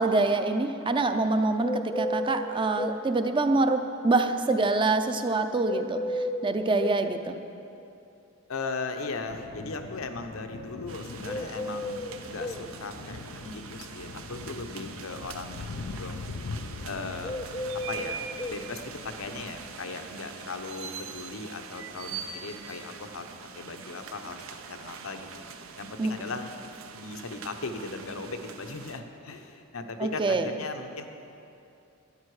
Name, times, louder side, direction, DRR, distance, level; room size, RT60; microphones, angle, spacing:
voice 1, 0.0-6.0 6.4-7.4 26.0-26.3 30.0-30.5, right 3 dB, 25° right, 8 dB, 0.5 m, -25 dB
sound 1, 1.6-3.0 5.6-7.0 11.2-12.6 17.2-18.6, left 1 dB, 20° left, 0.6 m, -33 dB
voice 2, 8.5-16.3 16.8-17.3 17.9-18.2 18.5-23.3 23.5-24.4 24.7-25.4 25.8-26.5 26.9-31.0, left 3 dB, 90° left, 6 dB, 0.9 m, -38 dB
sound 2, 9.3-19.7, left 3 dB, 75° left, 0.5 m, -42 dB
sound 3, 10.9-29.0, right 6 dB, 80° right, 0.7 m, -43 dB
12.5 x 10.5 x 4.8 m, 2.7 s
head